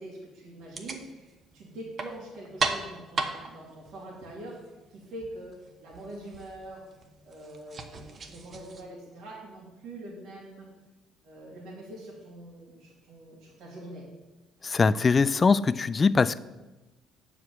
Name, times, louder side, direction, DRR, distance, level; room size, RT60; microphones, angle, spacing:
voice 1, 0.0-4.6 4.9-5.5 5.8-6.8 7.2-10.7 11.2-14.0, right 1 dB, 75° right, -5 dB, 2.4 m, -44 dB
sound 1, 0.6-8.8, right 4 dB, 45° right, 1.0 m, -37 dB
voice 2, 14.6-16.4, left 4 dB, 30° left, 17 dB, 0.3 m, -22 dB
7.7 x 4.9 x 7.0 m, 1.1 s
supercardioid pair, 85°, 0 cm